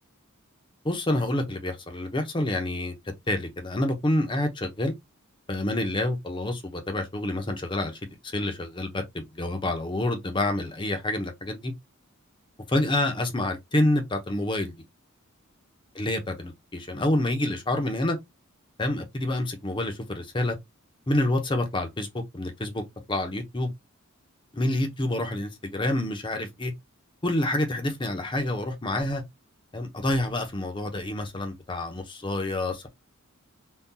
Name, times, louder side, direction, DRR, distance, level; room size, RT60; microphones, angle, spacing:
voice 1, 0.8-2.9 3.3-4.9 5.5-11.7 12.7-14.7 15.9-18.2 18.8-20.6 21.1-22.8 23.1-23.7 24.5-26.7 27.2-29.2 29.7-32.9, left 1 dB, 25° left, 0.7 m, -28 dB
3.7 x 2.3 x 2.7 m
head